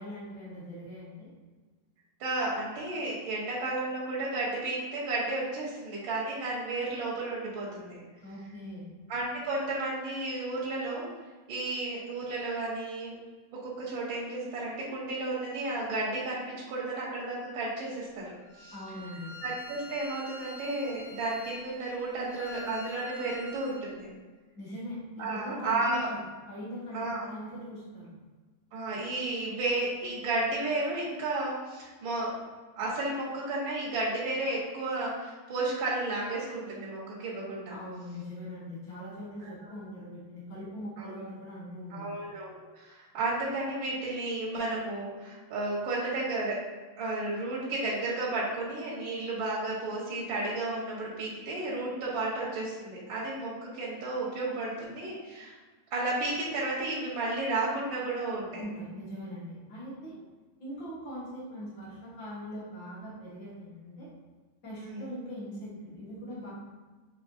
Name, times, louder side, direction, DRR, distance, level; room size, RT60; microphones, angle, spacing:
voice 1, 0.0-1.3 8.2-8.9 18.7-19.3 24.6-26.0 26.5-28.1 37.7-42.1 58.5-60.2 60.6-64.1 64.6-66.5, equal, 85° left, -9 dB, 0.7 m, -41 dB
voice 2, 2.2-8.0 9.1-11.0 11.5-13.1 13.6-18.3 18.6-18.7 19.4-24.1 25.2-26.1 26.9-27.3 28.7-32.3 32.8-37.7 39.4-39.5 41.0-41.2 41.9-46.6 47.0-55.5 55.9-58.6 64.8-65.0, right 2 dB, 65° right, -6 dB, 1.2 m, -33 dB
Bowed string instrument, 18.5-23.9, left 1 dB, 70° left, 1.4 m, -47 dB
6.7 x 2.8 x 2.6 m, 1.3 s
omnidirectional pair, 3.9 m